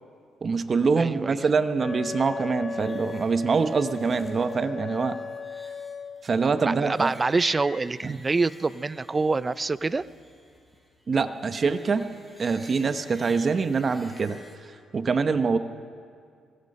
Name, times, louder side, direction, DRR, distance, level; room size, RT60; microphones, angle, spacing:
voice 1, 0.4-5.2 6.2-7.1 8.0-8.2 11.1-12.1 12.4-14.4 14.9-15.6, right 4 dB, 40° right, 10 dB, 0.9 m, -24 dB
voice 2, 1.0-1.4 6.7-10.1, right 3 dB, 25° right, 17 dB, 0.5 m, -26 dB
Wind instrument woodwind instrument, 1.8-6.3, left 6 dB, 35° left, 0.6 m, -37 dB
sound 1, 2.8-14.6, left 1 dB, ahead, 5.2 m, -51 dB
23.5 x 21.0 x 5.5 m, 2.2 s
cardioid pair, 90°, 0 cm